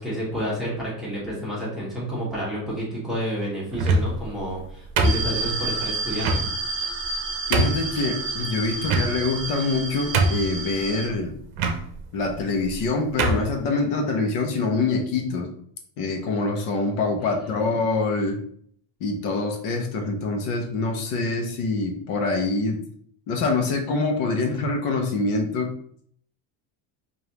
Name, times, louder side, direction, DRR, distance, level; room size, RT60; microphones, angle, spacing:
voice 1, 0.0-6.5 17.2-17.8, equal, ahead, -8 dB, 1.2 m, -30 dB
sound 1, 3.7-4.3 5.0-5.6 6.2-6.4 7.0-7.1 7.5-7.9 8.8-9.4 9.8-9.9 10.1-10.6 11.6-11.8 12.6-12.8 13.2-13.5, right 2 dB, 60° right, 0.7 m, -22 dB
sound 2, 5.0-11.1, right 3 dB, 25° right, 1.6 m, -30 dB
voice 2, 7.5-11.4 12.1-15.5 16.0-18.4 19.0-22.8 23.3-25.7, left 3 dB, 60° left, 4 dB, 1.0 m, -25 dB
5.1 x 2.7 x 2.9 m, 0.63 s
cardioid pair, 175°, 44 cm